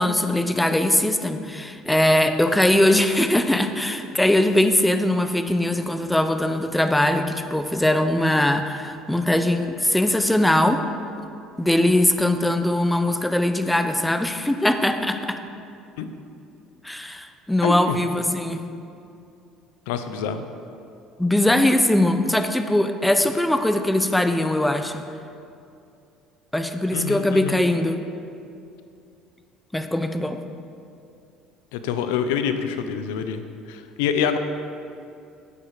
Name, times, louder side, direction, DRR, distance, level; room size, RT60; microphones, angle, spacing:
voice 1, 0.0-10.8 11.6-15.4 16.8-18.6 21.2-25.0 26.5-28.0 29.7-30.4, left 1 dB, 5° left, 8 dB, 0.9 m, -21 dB
voice 2, 17.6-18.0 19.9-20.4 26.9-27.6 31.7-33.4 33.7-34.4, left 7 dB, 85° left, 9 dB, 0.8 m, -26 dB
12.5 x 8.7 x 5.0 m, 2.6 s
supercardioid pair, 80°, 0 cm